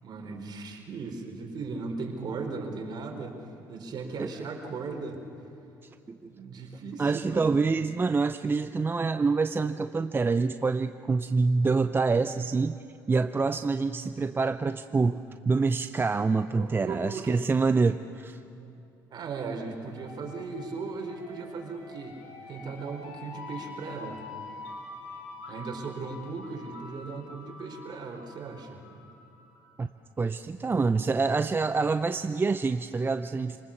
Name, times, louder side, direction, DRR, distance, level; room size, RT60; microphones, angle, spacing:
voice 1, 0.0-3.4 3.7-5.2 6.3-7.5 16.5-17.4 19.1-22.2 22.5-24.2 25.5-28.8, right 4 dB, 50° right, 3 dB, 4.0 m, -37 dB
voice 2, 7.0-18.4 29.8-29.9 30.2-33.6, right 4 dB, 25° right, 10 dB, 0.6 m, -26 dB
sound 1, 19.9-29.6, left 3 dB, 80° left, 3.9 m, -46 dB
27.5 x 19.5 x 7.2 m, 2.9 s
hypercardioid pair, 65°, 9 cm